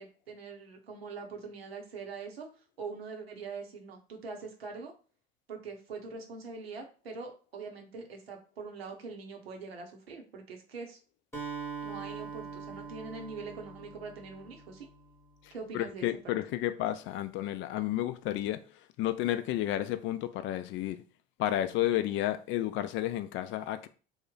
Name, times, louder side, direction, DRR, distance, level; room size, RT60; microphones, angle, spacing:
voice 1, 0.0-2.5 2.8-4.9 5.5-11.0 11.8-14.9 15.5-16.1, right 4 dB, 85° right, 0.8 m, -43 dB
Acoustic guitar, 11.3-15.2, right 5 dB, 10° left, 0.9 m, -42 dB
voice 2, 15.4-21.0 21.4-23.9, left 13 dB, 45° left, 0.4 m, -32 dB
3.1 x 2.1 x 3.7 m
hypercardioid pair, 70°, 29 cm